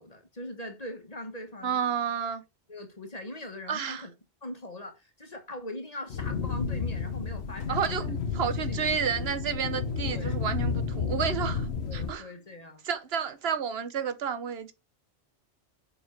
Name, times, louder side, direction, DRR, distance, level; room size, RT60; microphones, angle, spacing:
voice 1, 0.0-1.8 2.7-4.1 4.4-9.0 10.1-10.4 11.8-12.8, left 1 dB, 35° left, 1.5 m, -41 dB
voice 2, 1.6-2.4 3.7-4.1 7.7-12.3 12.8-14.7, right 7 dB, 65° right, 1.2 m, -31 dB
sound 1, 6.1-12.1, left 5 dB, 70° left, 1.3 m, -31 dB
sound 2, 8.4-13.2, left 2 dB, 30° right, 2.2 m, -51 dB
7.1 x 5.6 x 4.4 m
omnidirectional pair, 1.1 m